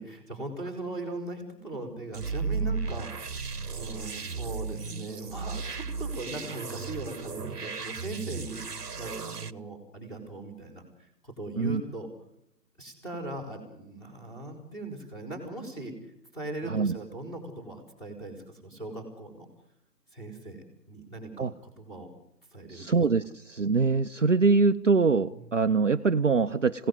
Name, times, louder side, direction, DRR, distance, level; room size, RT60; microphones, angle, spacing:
voice 1, 0.0-12.1 12.8-19.5 20.1-21.5 21.8-22.1 22.5-22.9 25.3-25.5, right 2 dB, 5° left, -1 dB, 4.1 m, -39 dB
sound 1, 2.1-9.5, right 5 dB, 65° right, 1.2 m, -35 dB
voice 2, 22.7-26.9, right 4 dB, 50° right, 7 dB, 0.8 m, -24 dB
27.5 x 17.5 x 8.1 m, 0.81 s
figure-of-eight pair, 155°, 49 cm